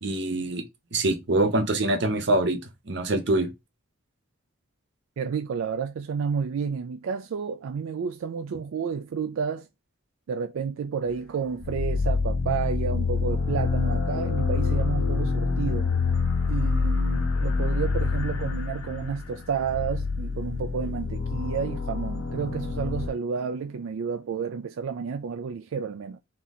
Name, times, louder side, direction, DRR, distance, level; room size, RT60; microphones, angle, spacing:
voice 1, 0.0-0.6 0.9-2.6 2.9-3.5, right 2 dB, 55° right, 0.9 m, -24 dB
voice 2, 5.2-9.7 10.3-15.9 16.5-26.2, right 6 dB, 80° right, 0.3 m, -31 dB
sound 1, 11.6-23.1, left 4 dB, 80° left, 0.7 m, -26 dB
3.7 x 2.8 x 4.1 m
head